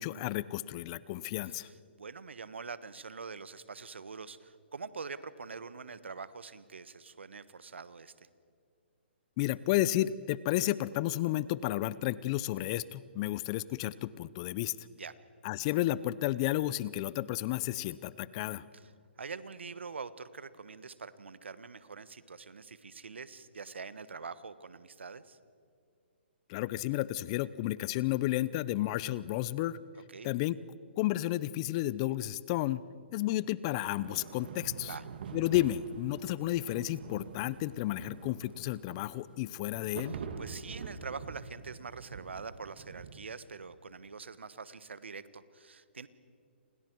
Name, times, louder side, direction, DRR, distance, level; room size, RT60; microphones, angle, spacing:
voice 1, 0.0-1.7 9.4-14.7 15.4-18.6 26.5-29.8 30.2-30.6 31.0-32.8 33.1-34.9 35.3-40.2, left 15 dB, 30° left, 19 dB, 0.7 m, -32 dB
voice 2, 1.4-8.3 15.0-15.1 18.7-18.9 19.2-25.4 29.9-30.3 34.8-35.1 40.0-46.1, right 5 dB, 80° right, 15 dB, 1.4 m, -45 dB
sound 1, 34.0-43.2, right 5 dB, 55° right, 2.2 m, -45 dB
29.5 x 27.5 x 4.7 m, 2.3 s
hypercardioid pair, 140°, 6 cm